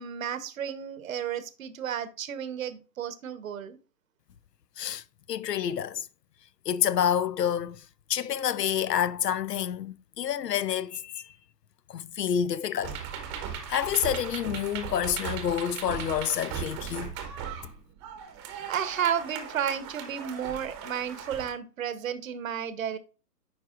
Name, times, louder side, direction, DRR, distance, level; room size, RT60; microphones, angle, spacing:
voice 1, 0.0-3.8 18.7-23.0, right 8 dB, 55° right, 0.9 m, -32 dB
voice 2, 5.3-6.1 6.7-7.8 8.1-11.3 11.9-13.0 13.7-17.1, left 9 dB, 80° left, 0.7 m, -28 dB
sound 1, 12.8-21.5, right 7 dB, 20° right, 0.8 m, -38 dB
9.6 x 4.7 x 2.4 m
hypercardioid pair, 140°, 48 cm